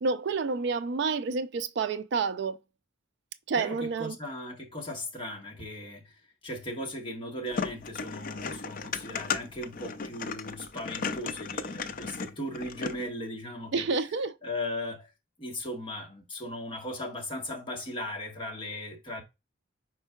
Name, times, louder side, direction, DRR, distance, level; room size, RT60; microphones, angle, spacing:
voice 1, 0.0-2.6 3.5-4.2 13.7-14.3, right 4 dB, 55° right, 0.4 m, -29 dB
voice 2, 3.6-13.9 14.4-15.1 15.4-19.2, left 1 dB, 25° left, 1.3 m, -37 dB
sound 1, 7.5-13.1, left 5 dB, 45° left, 0.4 m, -35 dB
5.4 x 4.4 x 2.2 m
head